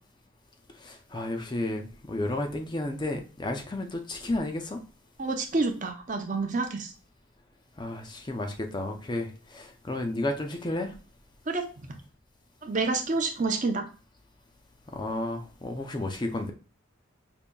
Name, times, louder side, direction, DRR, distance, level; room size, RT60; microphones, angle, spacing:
voice 1, 0.8-4.8 7.8-10.9 14.9-16.5, left 1 dB, 20° left, 0.5 m, -32 dB
voice 2, 5.2-6.9 11.5-11.6 12.6-13.8, right 3 dB, 40° right, 0.6 m, -28 dB
5.2 x 2.7 x 2.2 m
head